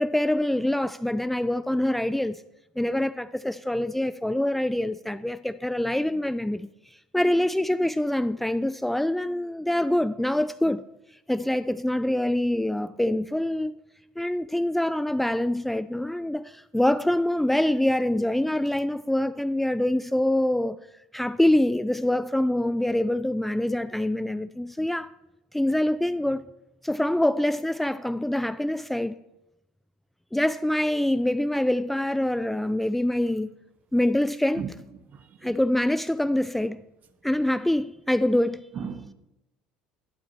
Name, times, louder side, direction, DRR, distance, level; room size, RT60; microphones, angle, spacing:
voice 1, 0.0-2.4 2.8-6.7 7.1-10.8 11.3-13.8 14.2-20.8 21.1-25.1 25.5-26.4 26.8-29.1 30.3-33.5 33.9-34.6 35.4-36.8 37.2-38.7, left 1 dB, 5° left, 0.4 m, -25 dB
voice 2, 35.0-35.6 38.7-39.1, right 7 dB, 45° right, 0.9 m, -36 dB
18.0 x 11.0 x 2.9 m
hypercardioid pair, 70°, 4 cm